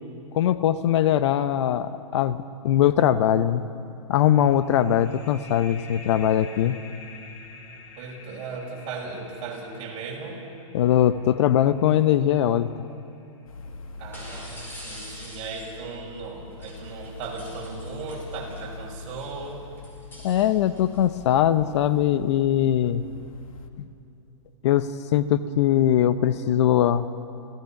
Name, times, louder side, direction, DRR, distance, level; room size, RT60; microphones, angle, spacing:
voice 1, 0.3-3.6 4.1-6.8 10.7-12.7 20.2-23.0 23.8-23.9 24.6-27.1, left 11 dB, 55° left, 13 dB, 0.8 m, -21 dB
sound 1, 4.4-13.6, left 4 dB, 40° left, 2.5 m, -48 dB
voice 2, 8.0-10.4 14.0-19.6, right 4 dB, 35° right, -2 dB, 5.9 m, -37 dB
sound 2, 12.0-12.2 14.1-15.9 16.5-18.7 19.1-21.2, equal, 10° left, 5.1 m, -46 dB
sound 3, 13.5-23.7, left 4 dB, 85° left, 1.7 m, -43 dB
28.0 x 16.5 x 5.9 m, 2.8 s
hypercardioid pair, 140°, 17 cm